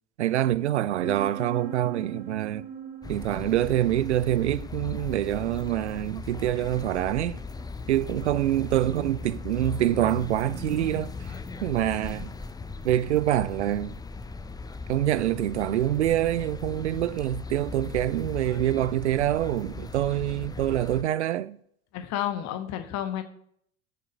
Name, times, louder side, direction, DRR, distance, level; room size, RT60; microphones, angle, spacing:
voice 1, 0.2-2.6 3.1-7.4 7.9-11.1 11.6-12.3 12.8-13.9 14.9-21.6, right 13 dB, 75° right, 0.6 m, -25 dB
sound 1, 1.0-12.5, right 5 dB, 25° right, 2.2 m, -44 dB
sound 2, 3.0-21.0, left 3 dB, 10° left, 0.6 m, -38 dB
voice 2, 21.9-23.2, left 11 dB, 50° left, 1.3 m, -31 dB
8.5 x 6.8 x 7.5 m
figure-of-eight pair, 65°, 35 cm